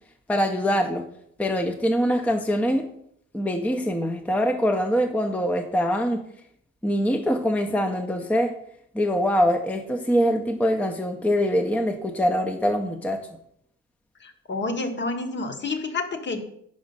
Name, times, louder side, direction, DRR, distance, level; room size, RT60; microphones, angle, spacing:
voice 1, 0.3-1.1 1.4-2.8 3.3-6.2 6.8-8.5 8.9-13.2, equal, 5° left, 4 dB, 0.5 m, -23 dB
voice 2, 14.2-16.4, left 3 dB, 40° left, 6 dB, 0.9 m, -29 dB
5.1 x 4.8 x 5.3 m, 0.70 s
cardioid pair, 90°, 30 cm